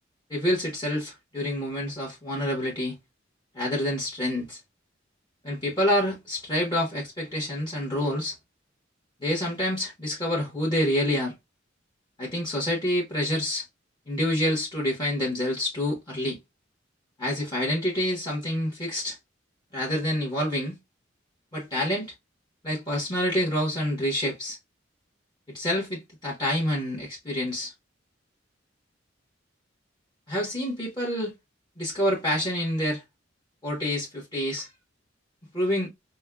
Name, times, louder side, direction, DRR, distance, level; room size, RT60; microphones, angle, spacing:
voice 1, 0.3-3.0 3.5-4.6 5.4-8.4 9.2-11.3 12.2-13.6 14.1-16.4 17.2-19.2 19.7-20.8 21.5-22.1 22.6-24.6 25.5-27.7 30.3-31.3 31.8-33.0 33.6-34.7 35.5-35.9, left 1 dB, 20° left, 1.2 m, -27 dB
5.3 x 2.2 x 2.3 m
head